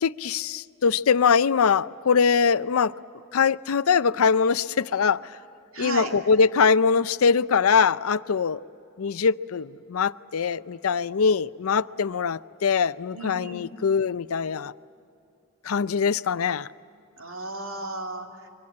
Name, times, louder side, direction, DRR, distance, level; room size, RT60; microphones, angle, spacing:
voice 1, 0.0-2.9 3.3-5.2 5.8-8.6 9.0-14.7 15.6-16.7, left 5 dB, 90° left, 0.5 m, -22 dB
voice 2, 5.7-6.1 13.1-13.7 17.2-18.5, right 2 dB, 75° right, 2.8 m, -34 dB
26.5 x 24.0 x 8.6 m
head